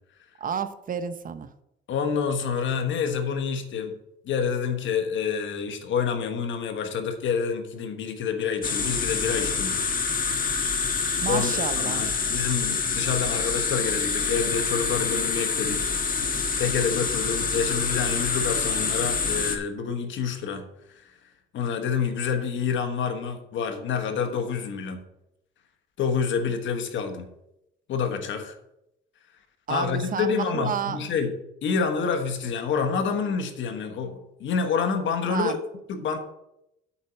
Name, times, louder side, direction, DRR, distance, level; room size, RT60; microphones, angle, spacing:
voice 1, 0.4-1.5 11.2-12.1 29.7-31.0 35.3-35.6, right 7 dB, 45° right, 10 dB, 0.8 m, -30 dB
voice 2, 1.9-4.0 4.2-9.8 11.3-15.9 16.6-20.7 21.0-21.1 21.5-25.0 26.0-27.3 27.9-28.6 29.7-31.3 31.6-35.6 35.9-36.2, left 6 dB, 75° left, 7 dB, 1.3 m, -28 dB
sound 1, 8.6-19.6, left 5 dB, 45° left, 1.3 m, -26 dB
8.5 x 4.4 x 7.0 m, 0.85 s
cardioid pair, 90°, 20 cm